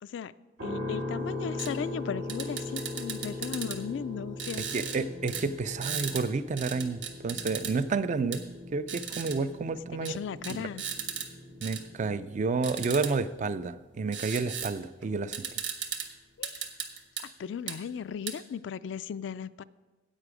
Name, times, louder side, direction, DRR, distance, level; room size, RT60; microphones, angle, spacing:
voice 1, 0.0-0.3 0.6-5.1 10.0-10.8 16.4-16.7 17.2-19.6, left 7 dB, 70° left, 16 dB, 0.3 m, -36 dB
sound 1, 0.6-14.6, left 2 dB, 90° right, 2.2 m, -40 dB
sound 2, 1.6-1.7 2.3-3.8 4.4-5.0 5.3-5.4 5.8-6.2 6.6-7.7 8.3-8.4 8.9-9.4 10.0-10.1 10.4-11.3 11.6-11.8 12.6-13.1 14.1-14.7 15.0-15.1 15.3-16.1 16.4-17.2 17.7-17.8 18.3-18.4, right 7 dB, 75° right, 1.1 m, -36 dB
voice 2, 4.7-8.4 8.7-10.1 10.5-10.6 11.6-15.5, right 4 dB, 40° right, 13 dB, 0.4 m, -30 dB
sound 3, 4.9-12.7, equal, 55° right, 1.5 m, -52 dB
9.9 x 8.3 x 4.9 m, 1.2 s
head